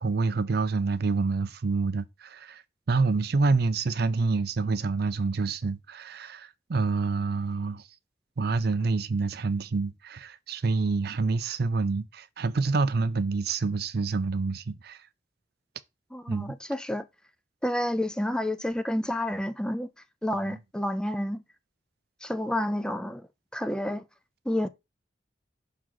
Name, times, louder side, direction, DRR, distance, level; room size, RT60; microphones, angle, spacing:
voice 1, 0.0-2.6 2.9-7.8 8.4-15.0 16.3-16.5, right 4 dB, 60° right, 0.5 m, -27 dB
voice 2, 16.1-17.1 17.6-19.9 20.2-21.4 22.2-24.1 24.5-24.7, left 1 dB, 5° left, 0.4 m, -29 dB
6.2 x 3.8 x 4.5 m
head